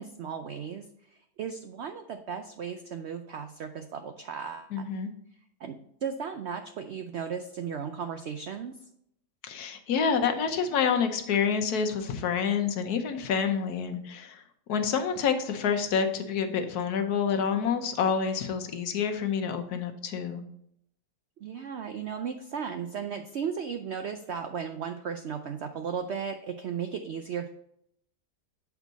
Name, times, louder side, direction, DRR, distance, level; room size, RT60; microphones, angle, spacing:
voice 1, 0.0-4.9 5.6-8.7 21.4-27.5, right 7 dB, 80° right, 7 dB, 0.6 m, -36 dB
voice 2, 4.7-5.1 9.4-14.4 14.7-20.4, left 6 dB, 70° left, 6 dB, 1.3 m, -28 dB
8.0 x 4.5 x 4.0 m, 0.75 s
omnidirectional pair, 1.7 m